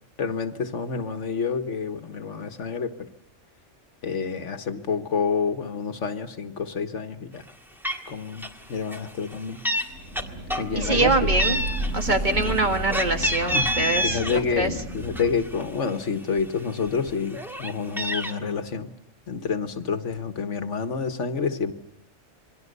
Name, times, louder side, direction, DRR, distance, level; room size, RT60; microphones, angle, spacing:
voice 1, 0.2-3.1 4.0-7.4 8.1-9.6 10.6-11.3 13.5-13.7 14.0-18.9 19.3-21.7, left 5 dB, 70° left, 9 dB, 1.7 m, -28 dB
Meow, 7.5-7.6 7.8-8.1 8.4-8.6 8.9-9.9 10.2-11.1 11.4-14.4 14.8-15.9 16.4-16.5 16.8-18.3, equal, ahead, 1.6 m, -29 dB
Thunder / Rain, 9.9-15.7, right 1 dB, 80° right, 6.7 m, -31 dB
voice 2, 10.8-11.6 11.9-14.7, right 3 dB, 40° right, 5 dB, 1.9 m, -24 dB
27.5 x 22.0 x 6.7 m, 0.75 s
omnidirectional pair, 1.3 m